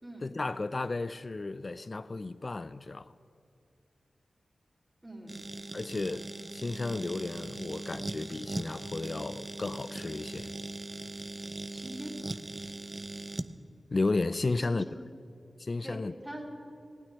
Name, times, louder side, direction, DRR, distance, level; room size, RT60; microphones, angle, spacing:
voice 1, 0.2-3.1 5.7-10.5 13.9-14.8 15.6-16.1, left 3 dB, 50° left, 0.4 m, -33 dB
voice 2, 5.0-5.4 6.1-6.2 11.7-12.1 14.5-15.0 15.8-16.0 16.2-16.5, right 1 dB, 15° right, 3.4 m, -43 dB
sound 1, 5.3-13.5, right 2 dB, 35° right, 0.7 m, -40 dB
16.0 x 9.2 x 9.9 m
cardioid pair, 40°, 0 cm